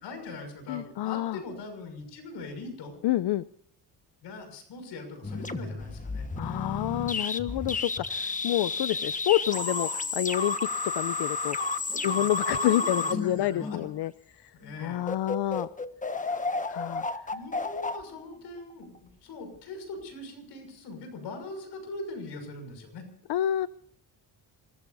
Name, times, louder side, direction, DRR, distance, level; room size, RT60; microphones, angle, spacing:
voice 1, 0.0-2.9 4.2-6.3 11.9-13.8 14.5-15.0 17.3-23.1, left 3 dB, 90° left, 7 dB, 6.3 m, -41 dB
voice 2, 0.7-1.4 3.0-3.4 6.4-11.7 12.0-14.1 14.4-14.5 14.8-15.7 16.3-17.1 23.3-23.7, left 13 dB, 70° left, 16 dB, 0.6 m, -28 dB
sound 1, 5.2-14.1 14.6-14.8 15.1-19.0, left 3 dB, 20° left, 1.3 m, -32 dB
26.5 x 19.5 x 2.7 m, 0.64 s
cardioid pair, 100°, 41 cm